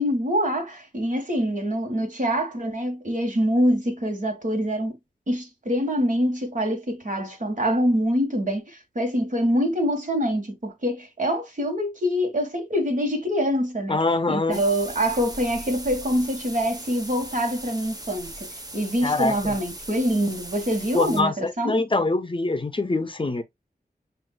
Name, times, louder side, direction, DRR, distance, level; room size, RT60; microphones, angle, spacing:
voice 1, 0.0-5.0 5.3-14.0 14.3-18.5 18.7-21.7, equal, 50° right, 1.7 m, -25 dB
voice 2, 13.9-14.6 19.0-19.5 20.9-23.4, left 2 dB, 30° left, 0.7 m, -24 dB
sound 1, 14.5-21.2, right 1 dB, 25° right, 1.0 m, -39 dB
7.6 x 2.6 x 2.3 m
wide cardioid pair, 55°, 16 cm